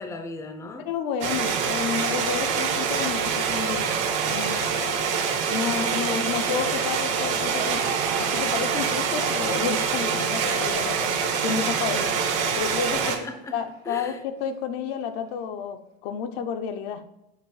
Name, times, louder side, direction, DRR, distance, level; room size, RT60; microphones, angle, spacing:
voice 1, 0.0-0.9 5.7-6.3 13.0-14.2, left 2 dB, 10° left, 6 dB, 0.5 m, -38 dB
voice 2, 0.8-4.0 4.3-4.8 5.5-11.1 11.4-12.2 12.6-13.2 13.5-17.0, left 7 dB, 70° left, 7 dB, 0.7 m, -31 dB
sound 1, 1.2-13.2, right 6 dB, 55° right, 1.2 m, -25 dB
sound 2, 7.6-13.8 14.5-14.6 15.3-15.4, right 8 dB, 80° right, 0.7 m, -40 dB
6.6 x 3.0 x 4.7 m, 0.86 s
supercardioid pair, 135°, 29 cm